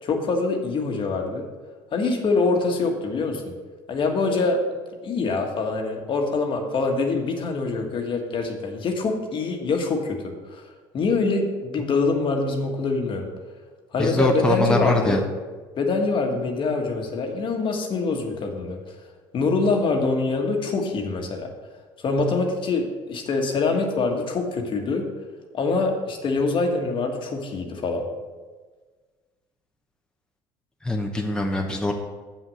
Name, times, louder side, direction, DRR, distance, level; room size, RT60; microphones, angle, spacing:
voice 1, 0.0-1.5 1.9-3.5 3.9-4.6 5.0-13.3 13.9-15.2 15.8-18.9 19.3-21.5 22.0-25.1 25.5-28.1, left 3 dB, 50° left, 3 dB, 1.5 m, -24 dB
voice 2, 14.0-15.2 30.8-31.9, left 2 dB, 5° left, 1 dB, 1.0 m, -23 dB
7.2 x 6.3 x 6.3 m, 1.4 s
supercardioid pair, 80°, 11 cm